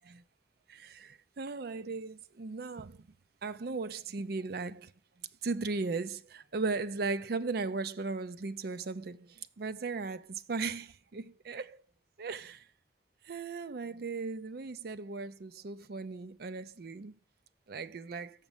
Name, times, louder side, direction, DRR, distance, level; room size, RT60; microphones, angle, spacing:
voice 1, 1.4-2.9 3.4-4.9 5.4-6.2 6.5-9.2 9.6-10.2 10.5-10.9 11.1-11.8 12.2-12.6 13.3-17.1 17.7-18.3, right 4 dB, 55° right, 0.5 m, -36 dB
7.2 x 5.3 x 7.0 m
head